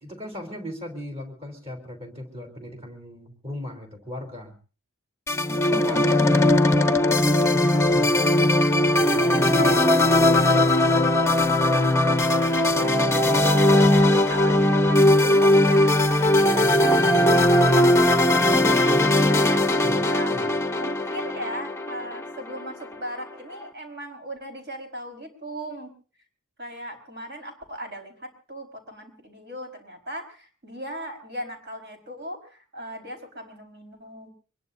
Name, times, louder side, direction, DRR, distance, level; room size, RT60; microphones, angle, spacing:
voice 1, 0.0-4.5 5.7-6.6 7.5-9.2 19.8-20.0 20.3-20.5, left 1 dB, 25° right, 3 dB, 3.7 m, -37 dB
sound 1, 5.3-22.6, left 1 dB, 10° left, 0.8 m, -19 dB
voice 2, 6.1-6.6 7.4-8.1 9.5-9.8 10.1-13.0 13.4-16.9 17.2-19.6 20.1-20.4 20.8-25.9 26.6-34.3, equal, 50° right, 3 dB, 4.7 m, -38 dB
24.5 x 21.5 x 2.7 m, 0.37 s
head